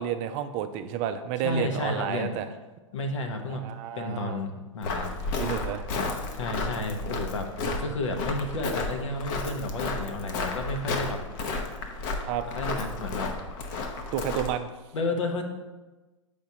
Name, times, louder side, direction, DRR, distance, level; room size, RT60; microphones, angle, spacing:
voice 1, 0.0-2.5 3.6-4.4 5.4-5.8 7.7-7.8 12.3-12.4 14.1-14.7, right 10 dB, 35° right, 9 dB, 0.4 m, -31 dB
voice 2, 1.4-2.4 2.9-3.6 4.0-5.4 6.3-7.5 7.8-11.2 12.5-13.3 14.9-15.4, left 2 dB, 70° left, 4 dB, 1.0 m, -32 dB
Walk footsteps, 4.8-14.6, left 3 dB, 45° left, 0.9 m, -32 dB
7.8 x 5.0 x 2.8 m, 1.2 s
figure-of-eight pair, 100°, 17 cm